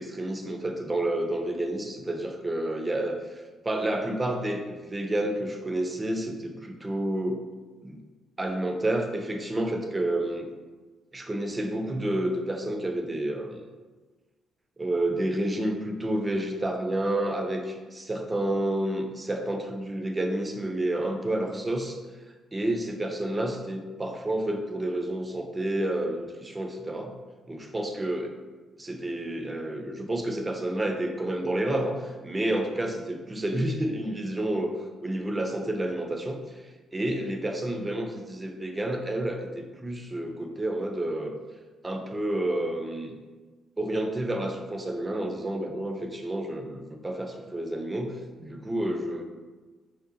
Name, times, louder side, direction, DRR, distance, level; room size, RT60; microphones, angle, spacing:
voice 1, 0.0-7.4 7.8-8.0 8.4-10.5 11.1-13.6 14.8-22.0 22.5-27.1 27.5-28.3 28.8-34.7 35.0-36.6 36.9-41.3 41.8-43.1 43.8-49.2, right 1 dB, 20° right, 3 dB, 0.3 m, -30 dB
2.6 x 2.0 x 2.5 m, 1.3 s
cardioid pair, 90°, 0 cm